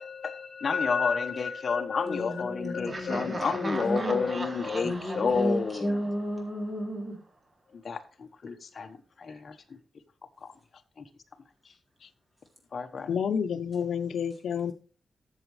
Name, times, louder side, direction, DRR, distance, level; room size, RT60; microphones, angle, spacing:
voice 1, 0.0-6.0 7.7-9.8 10.4-10.5 11.0-11.1 11.6-11.7 12.7-13.1, left 5 dB, 45° left, 1.2 m, -30 dB
voice 2, 2.0-4.3 4.8-7.2, equal, 10° right, 4.0 m, -32 dB
Laughter, 2.9-6.7, right 2 dB, 30° right, 1.2 m, -39 dB
voice 3, 13.1-14.7, left 7 dB, 85° left, 0.8 m, -29 dB
13.0 x 7.3 x 3.2 m
wide cardioid pair, 145°, 0 cm